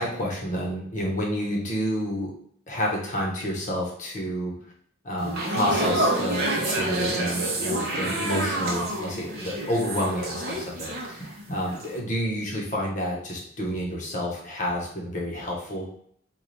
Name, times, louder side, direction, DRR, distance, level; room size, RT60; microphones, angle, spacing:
voice 1, 0.0-2.3 2.7-4.5 5.0-15.9, equal, 35° left, -2 dB, 0.9 m, -29 dB
sound 1, 5.2-11.4 11.7-12.0, right 1 dB, 50° right, 0.7 m, -28 dB
3.2 x 2.3 x 3.9 m, 0.64 s
head